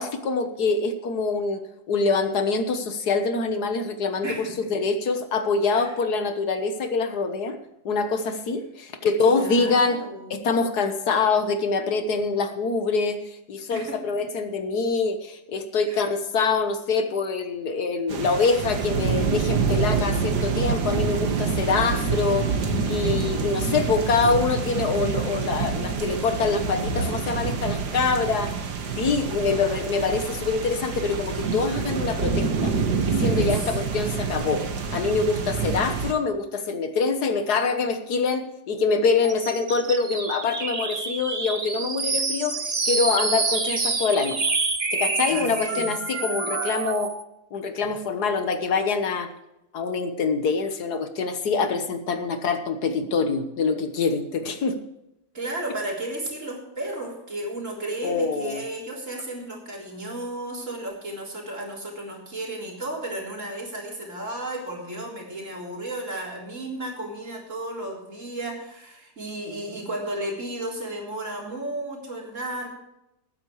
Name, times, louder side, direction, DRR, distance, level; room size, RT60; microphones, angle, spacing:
voice 1, 0.0-4.3 4.7-7.6 7.9-10.0 10.3-13.2 13.5-22.5 22.9-28.6 29.0-32.8 33.1-34.7 34.9-42.6 42.9-44.4 44.9-47.1 47.5-49.3 49.7-54.8 58.0-58.6, left 4 dB, 75° left, 8 dB, 1.7 m, -25 dB
voice 2, 4.2-4.7 5.7-5.9 9.2-10.5 13.7-14.3 15.9-16.0 33.3-33.7 35.3-35.8 45.3-45.9 55.3-72.7, right 1 dB, 50° right, -2 dB, 4.1 m, -34 dB
sound 1, 18.1-36.1, right 5 dB, 90° right, 2.0 m, -27 dB
sound 2, 39.2-47.2, right 4 dB, 30° right, 1.1 m, -27 dB
19.5 x 9.6 x 3.2 m, 0.88 s
omnidirectional pair, 1.7 m